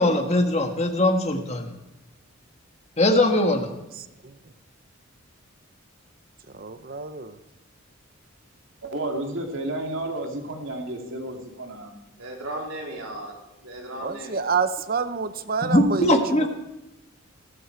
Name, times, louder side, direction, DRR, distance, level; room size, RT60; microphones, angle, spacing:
voice 1, 0.0-1.7 3.0-3.7 15.6-16.5, left 1 dB, 30° left, 5 dB, 1.6 m, -21 dB
voice 2, 6.6-7.4 14.0-16.5, right 5 dB, 40° right, 12 dB, 0.8 m, -27 dB
voice 3, 8.8-12.0, right 1 dB, 60° right, 2 dB, 2.5 m, -31 dB
voice 4, 12.2-13.3 13.6-14.5, right 1 dB, 85° right, -2 dB, 4.0 m, -36 dB
19.0 x 12.0 x 4.7 m, 0.96 s
head